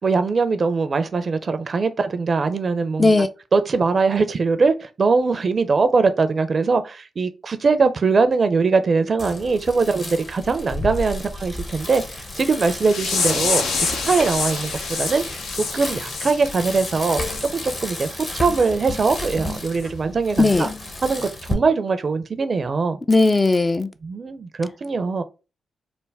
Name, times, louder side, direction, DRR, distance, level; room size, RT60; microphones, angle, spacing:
voice 1, 0.0-3.3 3.5-17.2 17.5-18.1 18.3-20.7 21.0-23.0 24.0-25.2, right 4 dB, 50° right, 0.5 m, -21 dB
voice 2, 3.0-3.3 20.4-20.7 23.1-23.9, left 2 dB, 30° left, 0.4 m, -17 dB
Bicycle, 9.2-21.5, left 1 dB, 45° left, 1.0 m, -32 dB
sound 1, 12.8-17.5 17.9-18.1 18.5-18.7 19.2-19.3 19.8-19.9, left 4 dB, 80° left, 0.5 m, -27 dB
3.3 x 2.1 x 3.3 m
supercardioid pair, 40°, 0 cm